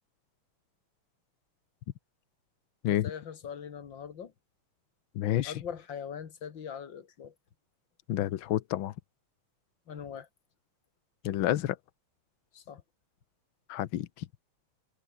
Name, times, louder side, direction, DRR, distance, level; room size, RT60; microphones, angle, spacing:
voice 1, 3.0-4.3 5.4-7.3 9.9-10.3 12.5-12.8, left 7 dB, 45° left, 2.2 m, -41 dB
voice 2, 5.1-5.5 8.1-8.9 11.2-11.8 13.7-14.3, left 13 dB, 75° left, 1.1 m, -29 dB
omnidirectional pair, 3.3 m